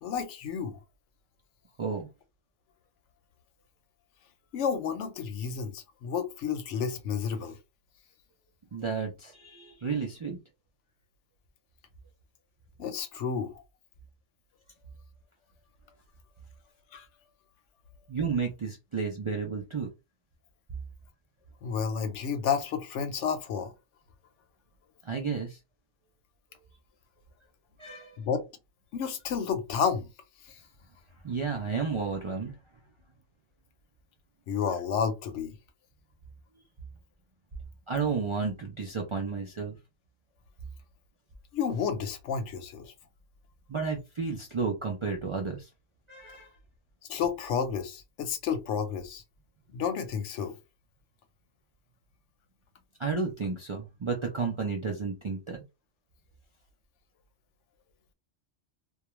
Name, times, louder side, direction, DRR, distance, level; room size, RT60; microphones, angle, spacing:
voice 1, 0.0-0.8 4.5-7.6 12.8-13.6 16.9-17.1 21.6-23.7 28.2-28.4 28.9-30.1 30.4-30.5 34.5-35.6 41.5-42.9 47.1-49.2 49.7-50.6, left 7 dB, 85° left, 0.9 m, -31 dB
voice 2, 8.7-10.4 18.1-19.9 25.0-25.6 27.8-28.2 31.2-32.6 37.9-39.8 43.7-45.7 46.1-46.6 53.0-55.6, right 5 dB, 55° right, 0.3 m, -32 dB
2.3 x 2.2 x 2.9 m
omnidirectional pair, 1.2 m